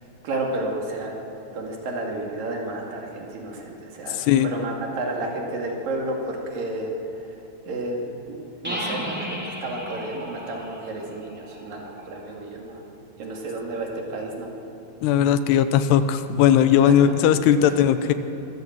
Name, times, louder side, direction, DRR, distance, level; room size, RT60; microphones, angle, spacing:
voice 1, 0.2-1.1 1.5-6.9 7.7-12.8 13.2-14.5 16.8-17.1 17.6-17.7, right 2 dB, 60° right, 0 dB, 3.8 m, -31 dB
voice 2, 4.1-4.5 15.0-18.1, left 9 dB, 85° left, 11 dB, 2.9 m, -18 dB
sound 1, 8.6-12.3, equal, 5° right, 2.0 m, -34 dB
24.5 x 14.5 x 7.5 m, 3.0 s
omnidirectional pair, 4.8 m